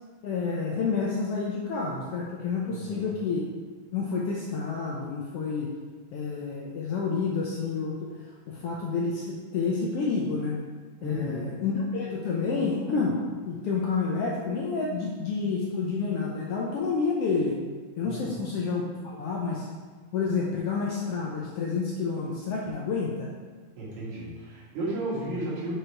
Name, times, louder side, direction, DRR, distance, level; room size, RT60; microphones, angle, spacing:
voice 1, 0.2-3.4 3.9-5.7 6.1-8.1 8.5-10.5 11.0-13.2 13.5-17.5 18.0-19.7 20.1-23.3, left 4 dB, 70° left, -3 dB, 1.5 m, -29 dB
voice 2, 2.7-3.1 11.0-11.5 18.0-18.3 23.8-25.7, right 1 dB, 75° right, -7 dB, 3.2 m, -33 dB
6.3 x 4.8 x 4.7 m, 1.4 s
omnidirectional pair, 3.3 m